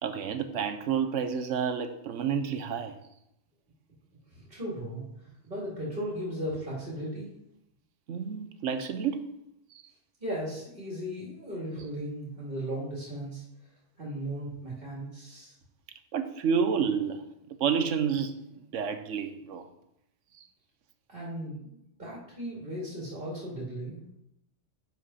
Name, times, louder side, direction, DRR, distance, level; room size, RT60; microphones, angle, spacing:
voice 1, 0.0-3.0 8.1-9.2 9.7-9.8 16.1-17.2 17.6-18.4 18.7-19.7 20.4-20.5, right 7 dB, 80° right, 1.1 m, -29 dB
voice 2, 4.3-5.0 5.4-7.3 10.2-13.4 14.0-15.5 21.1-24.0, equal, 45° right, 2.8 m, -36 dB
7.3 x 5.2 x 5.6 m
omnidirectional pair, 1.3 m